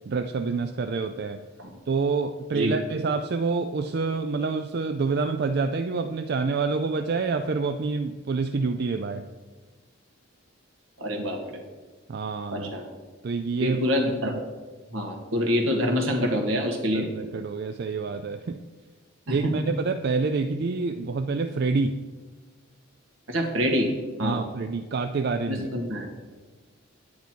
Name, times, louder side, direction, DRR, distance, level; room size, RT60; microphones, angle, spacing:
voice 1, 0.1-1.4 1.9-9.3 12.1-12.7 13.2-13.8 16.9-18.6 19.3-22.0 24.2-25.7, right 4 dB, 50° right, 8 dB, 0.4 m, -27 dB
voice 2, 11.0-11.4 12.5-12.9 13.6-14.3 14.9-17.1 19.3-19.5 23.3-23.9 24.2-24.4 25.5-26.1, equal, 75° right, 2 dB, 1.8 m, -26 dB
9.4 x 9.2 x 4.5 m, 1.3 s
head